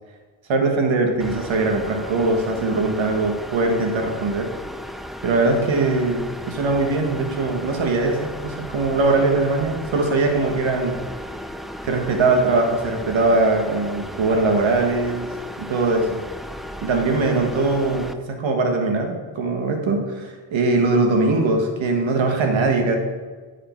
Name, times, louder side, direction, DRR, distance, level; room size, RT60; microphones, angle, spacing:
voice 1, 0.5-4.5 5.2-11.0 11.8-15.3 15.6-16.2 16.8-23.0, right 3 dB, 85° right, 3 dB, 1.4 m, -21 dB
sound 1, 1.2-18.1, equal, ahead, 0.4 m, -35 dB
9.9 x 4.9 x 4.4 m, 1.4 s
cardioid pair, 80°, 45 cm